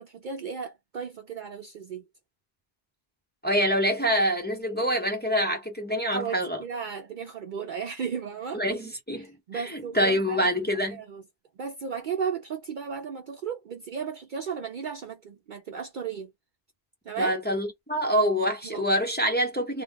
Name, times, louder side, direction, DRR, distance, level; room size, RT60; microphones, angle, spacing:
voice 1, 0.0-2.0 6.1-8.6 9.1-11.2 11.6-16.3 17.0-17.4 18.6-18.9, right 6 dB, 60° right, 0.6 m, -35 dB
voice 2, 3.4-6.6 8.5-11.0 17.2-19.8, equal, 10° left, 0.8 m, -26 dB
2.3 x 2.3 x 3.6 m
omnidirectional pair, 1.1 m